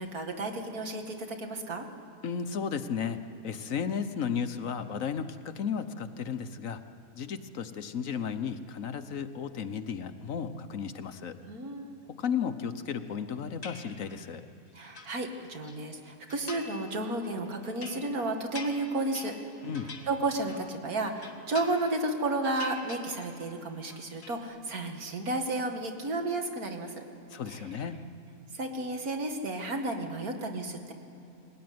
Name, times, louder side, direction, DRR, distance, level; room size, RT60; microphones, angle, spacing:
voice 1, 0.0-1.9 11.5-12.0 14.7-19.3 19.6-27.0 27.5-27.9 28.5-30.9, right 2 dB, 75° right, 4 dB, 2.5 m, -33 dB
voice 2, 2.2-3.2 3.4-6.8 7.1-11.4 12.2-14.4 19.6-19.9 27.3-28.0, left 7 dB, 65° left, 10 dB, 1.3 m, -34 dB
sound 1, 13.6-14.3 14.7-15.8 16.3-16.9 17.2-20.8 21.1-22.1 22.4-23.5 23.8-24.4, left 4 dB, 45° left, 2.0 m, -46 dB
22.0 x 17.5 x 9.5 m, 3.0 s
omnidirectional pair, 1.6 m